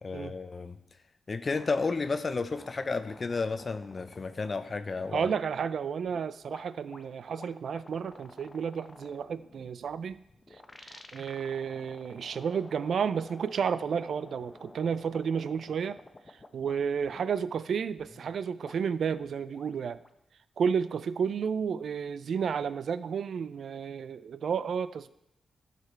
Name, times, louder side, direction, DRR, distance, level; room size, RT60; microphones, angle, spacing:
voice 1, 0.0-0.8 1.3-5.3, left 4 dB, 45° left, 10 dB, 0.6 m, -32 dB
sound 1, 1.4-5.7 6.0-16.7 17.0-17.4 18.0-20.2, left 2 dB, 30° left, 1.0 m, -51 dB
voice 2, 5.1-10.2 10.5-16.0 16.3-20.0 20.6-25.1, right 6 dB, 70° right, 15 dB, 0.3 m, -32 dB
12.0 x 5.9 x 4.5 m, 0.85 s
supercardioid pair, 50°, 0 cm